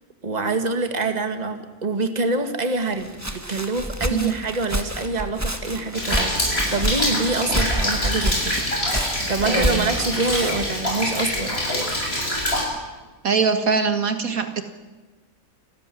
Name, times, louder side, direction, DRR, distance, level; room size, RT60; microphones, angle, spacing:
voice 1, 0.2-6.3 6.7-8.6 9.3-11.6, right 3 dB, 30° right, 7 dB, 2.1 m, -25 dB
Walk footsteps, 2.9-10.8, right 1 dB, 10° right, 1.7 m, -29 dB
Rain, 5.9-12.6, left 1 dB, 40° left, 7.6 m, -25 dB
voice 2, 9.4-9.9 13.2-14.6, right 5 dB, 70° right, 8 dB, 2.1 m, -22 dB
28.5 x 14.0 x 10.0 m, 1.2 s
omnidirectional pair, 1.6 m